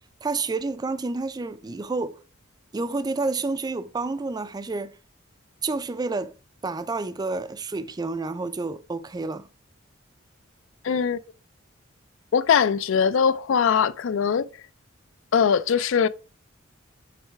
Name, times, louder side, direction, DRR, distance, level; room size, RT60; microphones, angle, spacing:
voice 1, 0.2-2.2 2.7-5.0 5.6-6.4 6.6-9.5, right 3 dB, 20° right, 0.3 m, -29 dB
voice 2, 10.8-11.2 12.3-14.5 15.3-16.1, left 7 dB, 65° left, 0.4 m, -21 dB
7.4 x 3.2 x 4.6 m
head